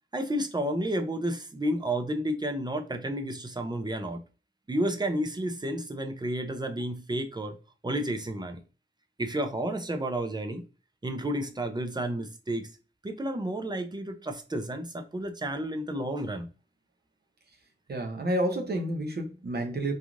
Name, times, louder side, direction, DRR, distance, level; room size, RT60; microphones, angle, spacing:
voice 1, 0.1-4.2 4.7-7.6 7.8-8.6 9.2-10.7 11.0-12.7 13.0-16.5, right 1 dB, 20° right, 0.5 m, -31 dB
voice 2, 17.9-19.9, right 1 dB, 55° right, 0.7 m, -29 dB
3.0 x 2.4 x 2.4 m
wide cardioid pair, 100°, 20 cm